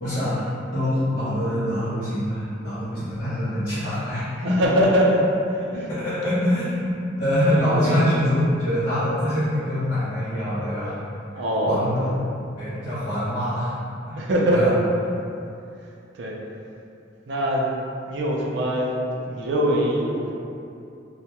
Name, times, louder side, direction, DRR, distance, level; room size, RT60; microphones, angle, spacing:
voice 1, 0.0-4.6 5.7-6.9 7.2-11.0 11.7-12.2 12.5-13.7 14.1-14.7, equal, 45° left, -14 dB, 0.6 m, -24 dB
voice 2, 4.4-6.0 7.5-8.1 11.3-12.2 14.2-14.8 16.1-16.4 17.3-17.7 18.1-19.0 19.2-20.3, equal, 65° right, -2 dB, 0.4 m, -23 dB
2.2 x 2.1 x 2.8 m, 2.6 s
head